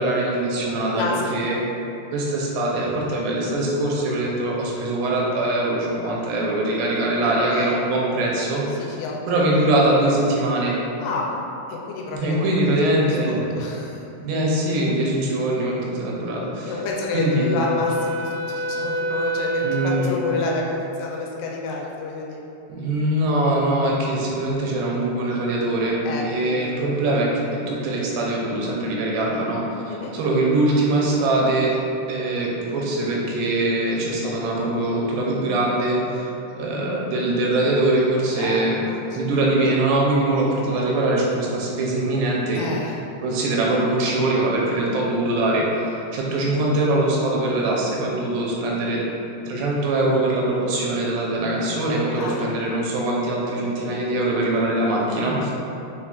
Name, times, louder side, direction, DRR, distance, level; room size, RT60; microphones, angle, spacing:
voice 1, 0.0-1.7 2.1-9.0 9.3-10.8 12.1-13.4 14.2-16.7 17.1-17.6 19.6-20.1 22.7-26.0 26.3-31.7 32.1-38.8 39.1-42.6 43.2-49.0 49.5-55.5, right 2 dB, 85° right, -3 dB, 2.5 m, -22 dB
voice 2, 0.9-1.4 7.5-7.8 8.7-9.2 11.0-11.4 11.7-12.4 12.7-14.0 16.7-22.4 26.1-26.7 29.9-30.2 38.4-39.2 42.6-43.0 52.2-52.4, left 3 dB, 90° left, -2 dB, 2.7 m, -29 dB
Wind instrument woodwind instrument, 16.7-20.7, equal, 65° left, 1.1 m, -28 dB
6.9 x 2.3 x 2.3 m, 2.9 s
omnidirectional pair, 4.7 m